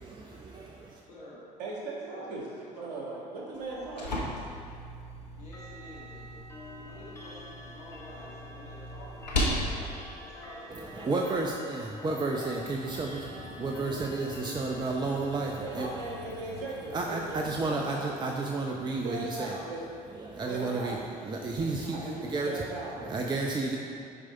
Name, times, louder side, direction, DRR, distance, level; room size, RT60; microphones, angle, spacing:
voice 1, 0.0-1.0 10.7-15.9 16.9-19.6 20.1-22.7 23.0-23.8, right 3 dB, 20° right, 0 dB, 0.7 m, -32 dB
voice 2, 1.1-1.4 2.1-3.2 3.5-3.9 5.4-6.4 6.7-12.4, left 1 dB, 75° left, -8 dB, 2.0 m, -49 dB
voice 3, 1.6-2.5 2.8-4.1 15.6-18.1 19.0-20.0 20.5-21.0 21.9-23.3, right 3 dB, 60° right, -2 dB, 1.7 m, -38 dB
sound 1, 3.5-11.5, left 1 dB, 90° left, 1.1 m, -37 dB
Clock, 5.4-18.5, left 2 dB, 15° left, 1.3 m, -48 dB
sound 2, 12.6-17.7, left 7 dB, 55° left, 0.8 m, -50 dB
9.7 x 4.8 x 4.3 m, 2.5 s
figure-of-eight pair, 60°, 21 cm